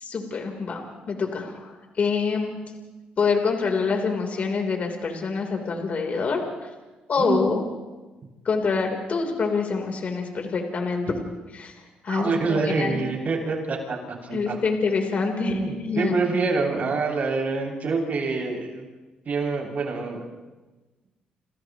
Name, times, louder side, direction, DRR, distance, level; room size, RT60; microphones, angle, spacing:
voice 1, 0.0-1.7 2.0-2.6 3.2-6.4 7.1-7.6 8.5-11.1 11.5-11.7 12.0-13.0 14.3-16.2, left 4 dB, 50° left, 2 dB, 3.8 m, -26 dB
voice 2, 7.2-7.6 12.1-14.0 14.2-14.6 15.4-18.8 19.3-20.2, right 4 dB, 55° right, 0 dB, 7.1 m, -26 dB
29.5 x 29.0 x 3.1 m, 1.2 s
cardioid pair, 75°, 3 cm